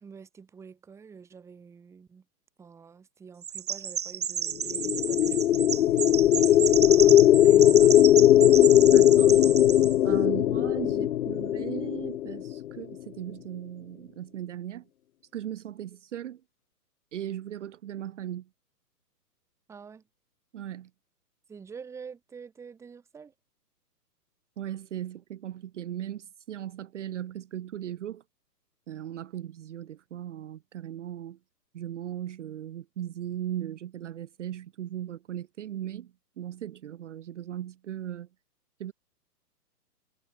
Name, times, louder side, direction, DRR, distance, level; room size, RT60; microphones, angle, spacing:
voice 1, 0.0-2.2 2.6-6.1 6.4-7.2 7.4-8.0 19.7-20.0 21.5-23.3, right 6 dB, 5° right, 1.7 m, -47 dB
Chirp tweet, 3.4-9.9, right 8 dB, 25° right, 0.6 m, -32 dB
sound 1, 4.7-12.8, left 12 dB, 65° left, 0.6 m, -19 dB
voice 2, 8.9-9.4 10.0-14.9 15.3-16.4 17.1-18.5 20.5-20.9 24.6-28.2 28.9-31.4 31.7-38.3 38.8-38.9, right 11 dB, 50° right, 1.1 m, -38 dB
hypercardioid pair, 160°, 48 cm